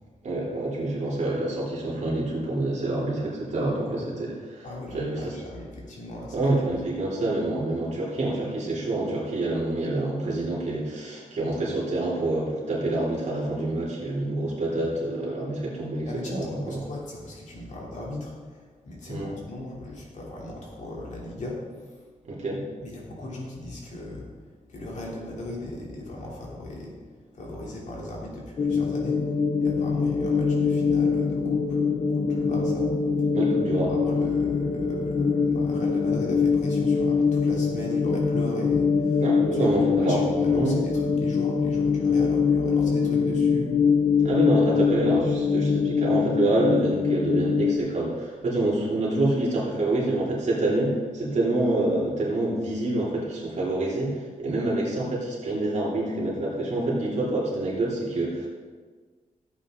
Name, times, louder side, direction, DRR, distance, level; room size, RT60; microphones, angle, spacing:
voice 1, 0.2-4.7 4.9-5.4 6.3-16.8 19.1-19.3 22.2-22.6 33.3-33.9 39.2-40.2 40.5-40.7 44.2-58.5, right 2 dB, 55° right, -6 dB, 3.2 m, -27 dB
voice 2, 4.6-6.8 16.1-22.1 22.8-29.2 29.6-31.8 32.1-33.3 33.9-39.7 39.9-44.0, left 1 dB, 60° left, -3 dB, 3.1 m, -38 dB
sound 1, 28.6-47.8, left 5 dB, 40° left, 0.7 m, -23 dB
15.0 x 8.3 x 3.8 m, 1.5 s
wide cardioid pair, 170°, 14 cm